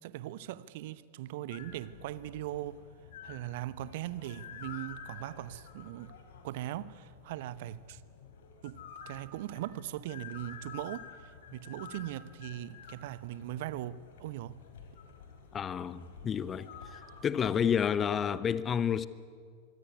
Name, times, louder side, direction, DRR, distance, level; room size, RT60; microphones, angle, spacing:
voice 1, 0.0-2.8 3.2-6.1 6.4-8.0 8.6-8.8 9.1-14.6, right 14 dB, 50° right, 0.9 m, -40 dB
sound 1, 1.5-17.8, left 7 dB, 60° left, 4.1 m, -50 dB
voice 2, 15.5-16.7 17.2-19.1, left 8 dB, 25° left, 0.9 m, -30 dB
24.5 x 24.0 x 9.7 m
figure-of-eight pair, 90°, 0 cm